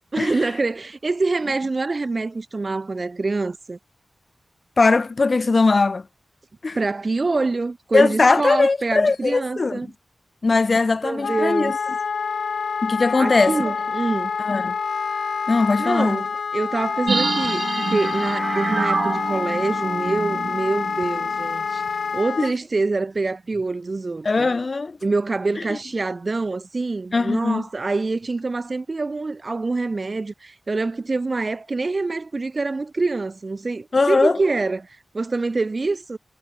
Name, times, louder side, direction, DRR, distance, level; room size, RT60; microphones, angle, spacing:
voice 1, 0.1-3.8 6.7-9.9 11.0-11.7 13.2-14.3 15.8-21.8 22.1-24.5 25.0-34.9 35.1-36.2, right 3 dB, 45° right, 1.9 m, -25 dB
voice 2, 4.8-6.1 6.6-6.8 7.9-9.8 10.4-11.8 12.8-13.6 14.4-14.7 15.5-16.2 24.2-25.0 25.7-25.8 27.1-27.6 33.9-34.4, left 3 dB, 45° left, 1.4 m, -19 dB
Wind instrument woodwind instrument, 11.2-22.5, left 5 dB, 85° left, 1.2 m, -27 dB
sound 1, 17.1-21.5 21.8-21.9, right 4 dB, 60° right, 1.3 m, -27 dB
wide cardioid pair, 85°, 0 cm